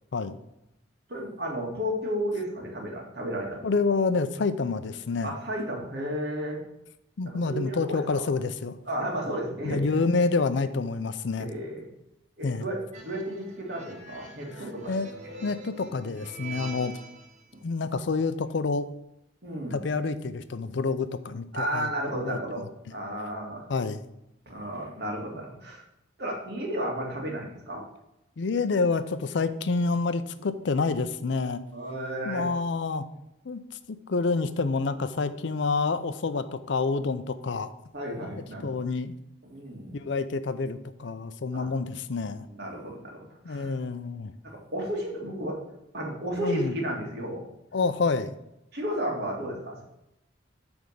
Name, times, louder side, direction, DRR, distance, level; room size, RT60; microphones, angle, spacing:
voice 1, 1.1-3.6 5.2-6.6 7.2-8.3 8.9-9.8 11.4-11.8 12.4-14.9 19.4-19.8 21.5-23.6 24.5-25.8 26.2-27.8 31.7-32.5 37.9-38.7 39.4-40.0 41.5-41.7 42.5-43.7 44.4-45.6 45.9-47.5 48.7-49.8, equal, 55° right, 0 dB, 2.0 m, -33 dB
voice 2, 3.6-5.3 7.2-8.8 9.6-11.5 12.4-12.6 14.9-15.1 15.4-17.0 17.6-18.9 19.7-22.4 23.7-24.0 28.4-31.6 32.2-33.0 33.5-33.6 34.1-37.7 38.6-39.1 39.9-42.5 43.4-44.3 46.4-46.7 47.7-48.3, left 4 dB, 65° left, 12 dB, 0.5 m, -28 dB
sound 1, 12.9-17.4, right 3 dB, 40° right, 1.2 m, -44 dB
9.1 x 3.5 x 6.5 m, 0.86 s
head